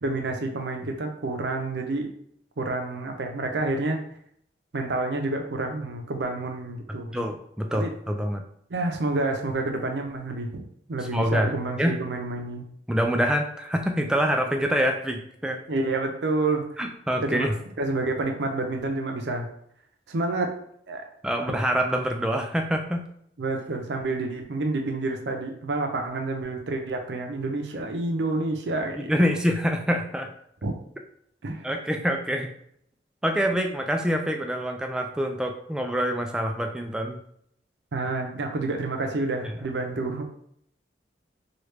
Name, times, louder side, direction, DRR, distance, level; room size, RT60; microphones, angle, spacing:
voice 1, 0.0-2.1 2.6-4.0 4.7-7.2 7.7-7.9 8.7-10.6 10.9-12.7 15.7-16.7 17.2-17.5 17.8-19.5 20.1-20.5 20.9-21.0 23.4-29.3 30.6-30.8 31.4-31.7 37.9-40.2, right 2 dB, 80° right, 3 dB, 0.6 m, -29 dB
voice 2, 7.1-8.4 11.1-11.5 11.8-12.0 12.9-15.6 16.8-17.6 21.2-23.0 29.0-30.3 31.6-32.5 33.2-37.2, equal, 5° right, 3 dB, 0.3 m, -25 dB
3.1 x 2.4 x 3.2 m, 0.68 s
head